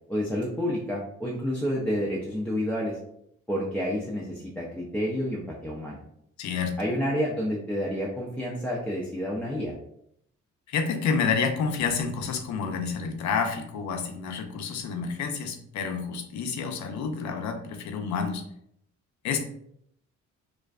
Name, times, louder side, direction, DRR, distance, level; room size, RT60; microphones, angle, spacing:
voice 1, 0.1-3.0 3.5-6.0 6.8-9.7, equal, 5° left, -6 dB, 0.4 m, -29 dB
voice 2, 6.4-6.8 10.7-18.4 19.2-19.4, left 5 dB, 70° left, 5 dB, 0.5 m, -29 dB
2.5 x 2.1 x 2.3 m, 0.72 s
cardioid pair, 90°, 30 cm